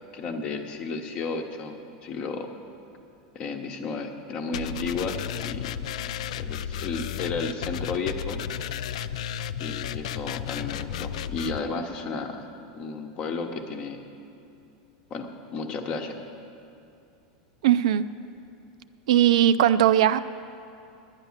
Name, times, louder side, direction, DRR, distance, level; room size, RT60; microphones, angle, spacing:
voice 1, 0.1-2.5 3.3-5.7 6.3-8.4 9.6-12.5 12.7-14.0 15.1-16.2, left 4 dB, 30° left, 5 dB, 0.9 m, -33 dB
sound 1, 4.5-11.6, left 9 dB, 80° left, 0.4 m, -33 dB
voice 2, 17.6-18.0 19.1-20.2, right 11 dB, 75° right, 13 dB, 0.4 m, -19 dB
10.5 x 9.8 x 7.2 m, 2.6 s
supercardioid pair, 165°, 3 cm